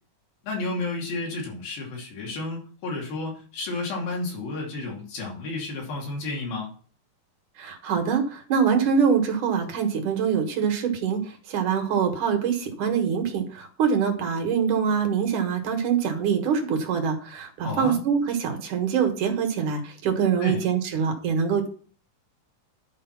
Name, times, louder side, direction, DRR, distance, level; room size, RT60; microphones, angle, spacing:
voice 1, 0.4-6.7 17.6-18.0 20.4-20.6, left 3 dB, 90° left, -1 dB, 4.4 m, -31 dB
voice 2, 7.6-21.7, right 6 dB, 65° right, 5 dB, 2.7 m, -24 dB
11.0 x 5.0 x 5.8 m, 0.42 s
omnidirectional pair, 4.0 m